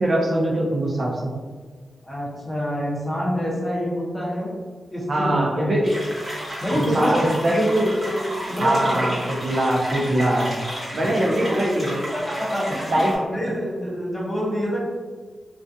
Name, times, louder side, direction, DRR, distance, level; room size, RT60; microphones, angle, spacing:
voice 1, 0.0-1.3 5.1-6.0 6.7-7.9 8.6-10.6 10.9-12.0 12.9-13.2, right 1 dB, 50° right, -2 dB, 0.4 m, -22 dB
voice 2, 2.0-4.5 4.9-6.0 6.6-7.3 8.0-9.1 12.1-14.8, equal, 15° left, -5 dB, 0.7 m, -27 dB
sound 1, 5.8-13.2, equal, 30° right, 0.9 m, -33 dB
2.4 x 2.2 x 2.5 m, 1.5 s
wide cardioid pair, 95°, 0 cm